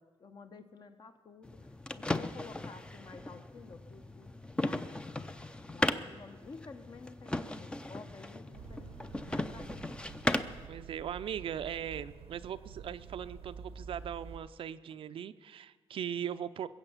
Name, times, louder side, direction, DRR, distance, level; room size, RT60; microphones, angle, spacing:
voice 1, 0.0-9.9, left 4 dB, 45° left, 8 dB, 1.0 m, -52 dB
sound 1, 1.4-10.7, left 1 dB, 10° left, 0.5 m, -37 dB
sound 2, 8.5-14.4, right 6 dB, 85° right, 0.8 m, -49 dB
voice 2, 10.4-16.7, right 9 dB, 60° right, 12 dB, 0.5 m, -39 dB
21.5 x 8.0 x 7.3 m, 1.5 s
cardioid pair, 115°, 10 cm